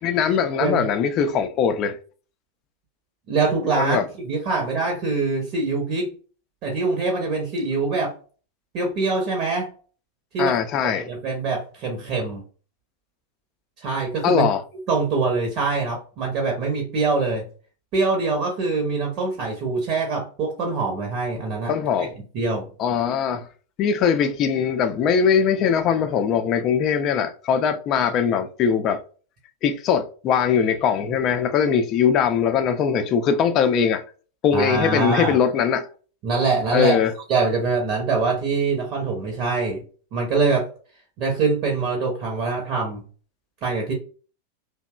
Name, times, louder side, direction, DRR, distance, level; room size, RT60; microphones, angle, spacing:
voice 1, 0.0-2.0 3.7-4.1 10.4-11.1 14.2-14.6 21.7-22.1 22.8-23.5 23.8-29.0 29.6-34.0 34.4-35.9 36.7-37.1, left 7 dB, 35° left, 0.4 m, -21 dB
voice 2, 3.3-6.1 6.6-8.1 8.7-9.7 10.3-10.6 10.8-12.4 13.8-14.5 14.9-17.4 17.9-21.7 22.3-22.7 34.5-35.3 36.2-37.0 37.3-39.8 40.1-40.7 41.2-43.0 43.6-43.9, right 4 dB, 40° right, 0.7 m, -24 dB
2.8 x 2.1 x 2.2 m
figure-of-eight pair, 90°, 0 cm